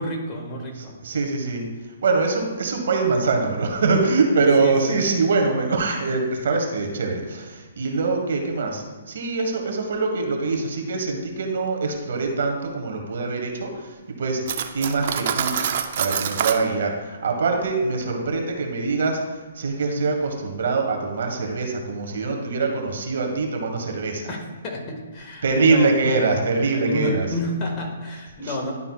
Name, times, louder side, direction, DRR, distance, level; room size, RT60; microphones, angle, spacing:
voice 1, 0.0-0.9 4.6-4.7 24.3-24.4 24.6-26.3 26.8-28.7, left 1 dB, 25° left, 0 dB, 1.5 m, -29 dB
voice 2, 0.8-1.7 2.0-14.4 14.7-15.5 16.0-24.3 25.4-27.3 28.4-28.6, right 3 dB, 65° right, 3 dB, 1.4 m, -23 dB
Cutlery silverware, 14.5-16.6, right 8 dB, 50° right, 0.6 m, -25 dB
11.0 x 5.5 x 2.3 m, 1.4 s
hypercardioid pair, 150°, 0 cm